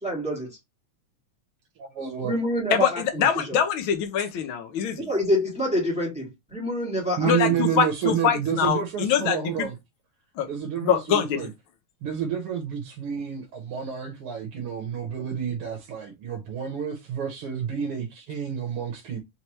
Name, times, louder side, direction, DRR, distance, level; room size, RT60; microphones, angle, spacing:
voice 1, 0.0-0.6 2.2-3.6 5.0-7.6, equal, 5° right, 0.9 m, -27 dB
voice 2, 1.8-2.3 7.2-9.7 10.5-11.5 12.0-19.2, right 8 dB, 65° right, 1.6 m, -29 dB
voice 3, 2.7-5.1 7.3-9.7 10.4-10.5 10.8-11.5, left 8 dB, 75° left, 1.1 m, -24 dB
5.1 x 2.9 x 3.0 m
omnidirectional pair, 3.3 m